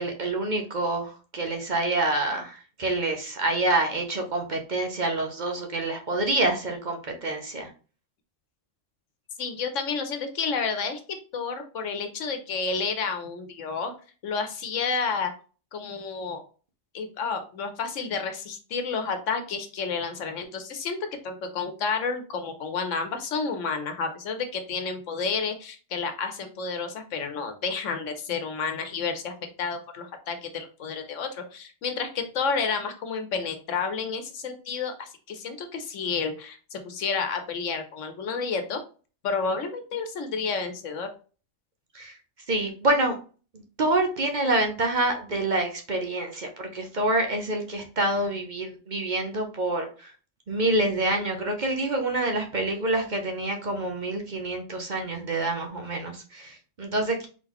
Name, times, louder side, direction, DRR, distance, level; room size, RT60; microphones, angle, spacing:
voice 1, 0.0-7.7 41.9-42.1 42.5-43.1 43.8-50.1 50.5-57.3, right 2 dB, 45° right, 3 dB, 0.8 m, -27 dB
voice 2, 9.4-11.0 11.3-13.9 14.2-15.3 15.7-16.4 16.9-21.0 21.2-29.3 29.6-38.8 39.2-41.1, left 5 dB, 80° left, 7 dB, 1.2 m, -30 dB
4.0 x 3.8 x 3.0 m, 0.37 s
omnidirectional pair, 1.3 m